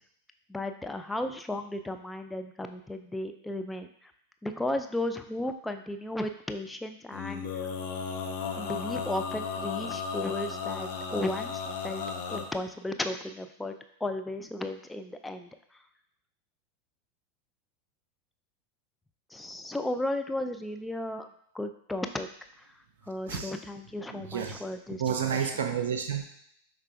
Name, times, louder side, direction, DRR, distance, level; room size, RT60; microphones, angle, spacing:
voice 1, 0.5-3.9 4.4-7.4 8.6-12.0 12.3-13.7 14.0-15.5 19.3-21.3 21.5-22.3 23.1-25.5, left 1 dB, 5° left, 6 dB, 0.3 m, -34 dB
Male singing, 7.1-12.4, left 6 dB, 55° left, 0.6 m, -35 dB
voice 2, 24.1-24.6 25.0-26.2, right 7 dB, 65° right, 6 dB, 0.5 m, -30 dB
5.4 x 3.4 x 2.5 m, 0.67 s
figure-of-eight pair, 90°, 0 cm